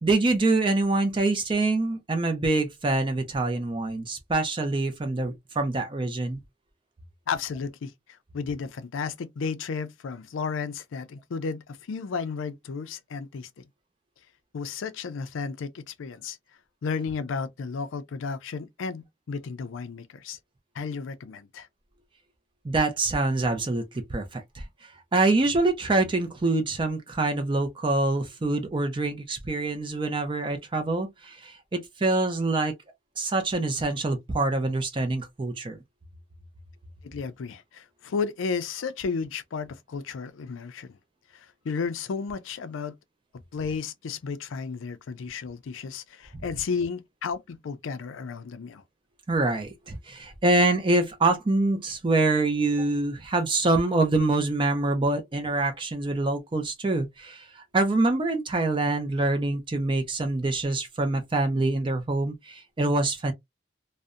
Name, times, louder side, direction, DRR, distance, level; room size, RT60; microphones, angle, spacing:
voice 1, 0.0-6.4 22.6-32.7 33.2-35.8 49.3-63.3, right 2 dB, 25° right, 0.4 m, -25 dB
voice 2, 7.3-7.9 8.3-13.5 14.5-16.4 16.8-20.4 20.8-21.7 37.0-41.0 41.3-42.9 43.5-48.8, left 5 dB, 75° left, 0.4 m, -33 dB
2.6 x 2.1 x 2.4 m
head